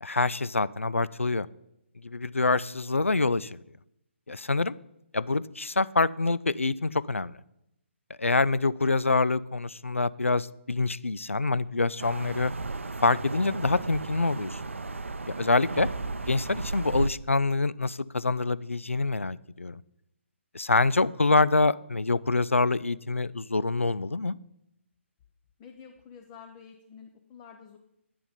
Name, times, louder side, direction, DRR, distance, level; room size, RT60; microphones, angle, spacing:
voice 1, 0.0-1.5 2.0-3.6 4.3-4.7 5.1-7.3 8.2-12.5 13.0-14.6 15.3-15.9 16.3-19.8 20.5-24.4, left 3 dB, 80° left, 19 dB, 0.4 m, -26 dB
sound 1, 12.0-17.1, right 3 dB, 70° right, 0.5 m, -34 dB
voice 2, 25.6-27.8, left 7 dB, 20° left, 4 dB, 0.7 m, -49 dB
9.2 x 7.0 x 5.1 m, 0.82 s
figure-of-eight pair, 135°, 7 cm